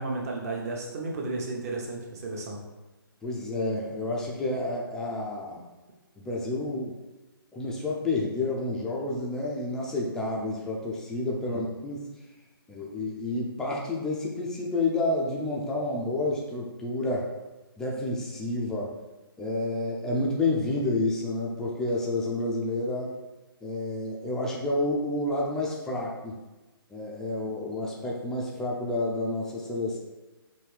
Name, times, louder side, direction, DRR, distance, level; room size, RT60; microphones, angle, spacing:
voice 1, 0.0-2.6 11.5-11.6, right 2 dB, 40° right, 0 dB, 1.0 m, -33 dB
voice 2, 3.2-5.6 6.2-7.0 7.5-12.1 12.7-17.3 17.8-18.9 19.4-23.1 23.6-26.4 26.9-30.0, left 2 dB, 5° left, -3 dB, 0.4 m, -29 dB
5.2 x 2.7 x 3.2 m, 1.1 s
figure-of-eight pair, 145°, 12 cm